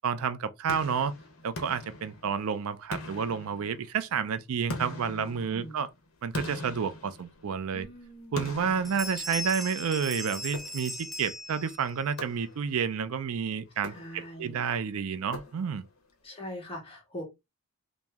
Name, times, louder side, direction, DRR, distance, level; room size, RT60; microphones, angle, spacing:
voice 1, 0.0-1.1 1.4-5.9 6.2-7.9 8.3-15.8, right 6 dB, 75° right, 0.4 m, -30 dB
sound 1, 0.7-2.5 2.9-4.1 4.7-7.7 8.4-9.8 10.5-11.2 12.2-12.9 13.7-14.5 15.3-16.0, left 2 dB, 70° left, 0.9 m, -42 dB
voice 2, 5.1-5.8 7.7-8.5 13.8-14.7 16.2-17.2, equal, 25° left, 1.4 m, -42 dB
Bell, 8.4-8.6 8.8-12.0, left 1 dB, ahead, 0.4 m, -38 dB
3.0 x 2.7 x 3.4 m
head